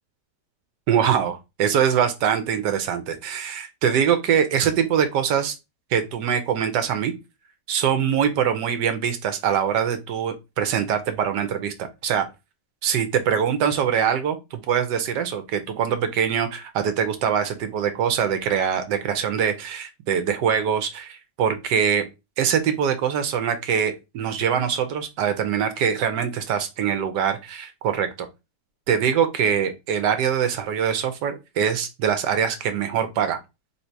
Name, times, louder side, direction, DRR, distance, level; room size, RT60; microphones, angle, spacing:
voice 1, 0.9-5.5 5.9-7.1 7.7-12.3 12.8-22.1 22.4-28.1 28.9-33.4, right 8 dB, 85° right, 9 dB, 1.3 m, -23 dB
3.6 x 2.7 x 4.5 m, 0.24 s
omnidirectional pair, 1.8 m